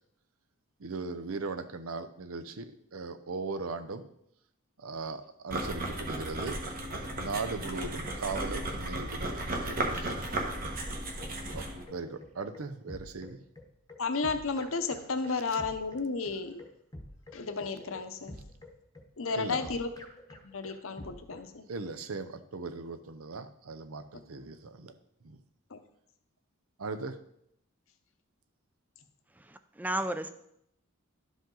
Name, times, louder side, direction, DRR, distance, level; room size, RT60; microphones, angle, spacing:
voice 1, 0.8-2.7 2.9-4.1 4.8-6.9 7.1-10.7 11.5-13.4 19.4-19.7 21.7-24.9 25.2-25.4 26.8-27.2, right 4 dB, 75° right, 10 dB, 0.7 m, -39 dB
sound 1, 5.5-11.8, right 1 dB, 40° right, 1.3 m, -35 dB
sound 2, 10.9-21.5, left 1 dB, 15° left, 0.9 m, -48 dB
voice 2, 14.0-16.6 17.3-18.4 19.2-19.9 20.4-21.6 25.7-25.8, left 4 dB, 65° left, 9 dB, 0.8 m, -33 dB
voice 3, 29.4-30.3, right 1 dB, 10° right, 10 dB, 0.4 m, -33 dB
12.0 x 5.1 x 3.9 m, 0.76 s
head